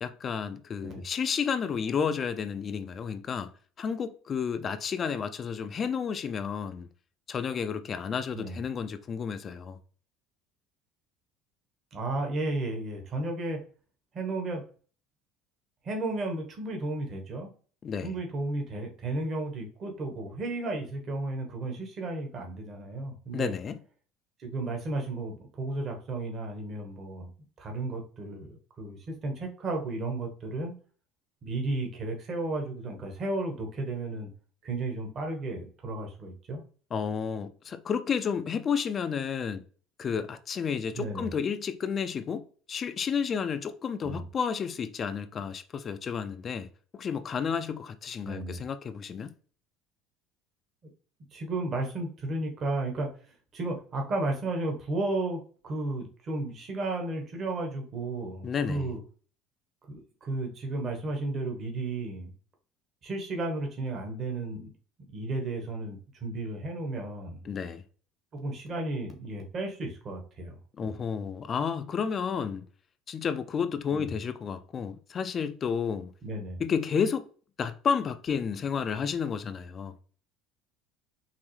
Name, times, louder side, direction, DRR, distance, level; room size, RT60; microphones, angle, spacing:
voice 1, 0.0-3.5 3.8-6.9 7.3-9.8 17.8-18.1 23.3-23.8 36.9-39.7 40.0-49.3 58.4-58.9 67.4-67.8 70.8-72.7 73.1-76.1 76.6-77.3 77.6-79.9, left 6 dB, 40° left, 0.4 m, -31 dB
voice 2, 11.9-13.6 14.1-14.6 15.8-17.5 18.0-23.5 24.4-27.3 27.6-30.7 31.4-34.3 34.6-36.6 40.9-41.3 44.0-44.2 48.2-48.6 51.3-53.1 53.5-59.0 59.9-62.3 63.0-64.7 65.1-67.4 68.3-70.9 73.9-74.2 76.2-76.6, right 2 dB, 45° right, 1.2 m, -33 dB
5.5 x 2.0 x 3.1 m
supercardioid pair, 90°, 0 cm